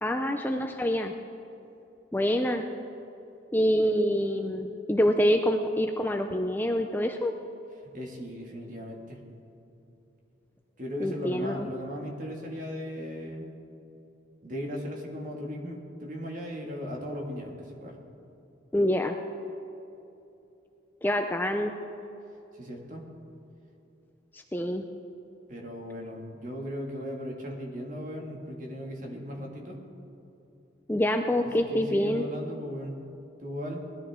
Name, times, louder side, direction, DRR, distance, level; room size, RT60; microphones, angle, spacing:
voice 1, 0.0-1.1 2.1-2.7 3.5-7.3 11.0-11.7 18.7-19.2 21.0-21.7 24.3-24.8 30.9-32.3, equal, 10° left, 5 dB, 0.4 m, -26 dB
voice 2, 7.8-9.2 10.8-13.5 14.4-18.0 22.5-23.0 25.5-29.8 31.4-33.0 33.4-33.8, equal, 40° right, 0 dB, 2.0 m, -37 dB
19.5 x 13.0 x 3.7 m, 2.9 s
head